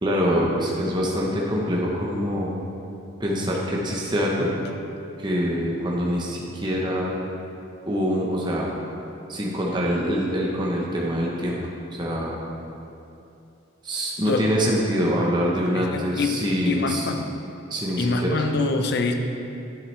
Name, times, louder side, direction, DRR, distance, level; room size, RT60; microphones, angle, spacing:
voice 1, 0.0-2.5 3.2-4.5 5.2-7.2 7.9-8.7 9.3-11.6 11.9-12.4 13.8-17.1 17.7-18.4, equal, 20° right, -3 dB, 1.0 m, -25 dB
voice 2, 15.7-17.3 18.0-19.1, left 3 dB, 50° left, 5 dB, 0.6 m, -25 dB
10.5 x 7.6 x 3.3 m, 2.7 s
head